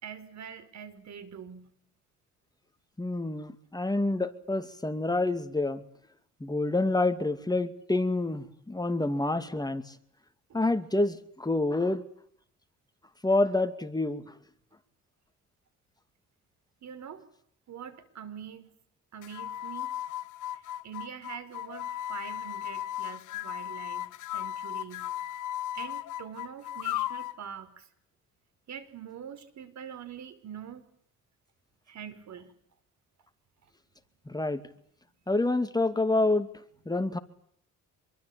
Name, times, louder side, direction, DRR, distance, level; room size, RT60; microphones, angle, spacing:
voice 1, 0.0-1.7 10.5-10.6 16.8-17.2 17.7-18.7 19.1-19.9 20.5-25.3 25.7-27.9 28.7-30.8 31.9-32.6, right 8 dB, 65° right, 14 dB, 5.2 m, -44 dB
voice 2, 3.0-5.8 6.4-9.8 10.5-12.0 13.2-14.2 34.3-34.6 35.3-36.5 36.9-37.2, left 2 dB, 15° left, 8 dB, 2.6 m, -27 dB
sound 1, 19.2-27.4, left 12 dB, 85° left, 1.1 m, -36 dB
26.5 x 23.0 x 8.8 m, 0.65 s
cardioid pair, 90°, 30 cm